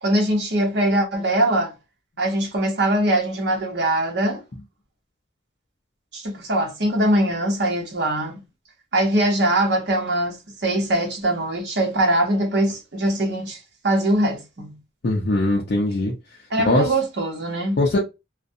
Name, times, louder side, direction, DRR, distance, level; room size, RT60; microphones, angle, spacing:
voice 1, 0.0-1.7 2.2-4.4 6.1-8.4 8.9-13.6 13.8-14.8 16.5-17.8, right 1 dB, 60° right, 0.9 m, -22 dB
voice 2, 15.0-16.1 16.6-16.9 17.8-18.0, left 1 dB, 55° left, 0.5 m, -20 dB
2.4 x 2.1 x 2.6 m
head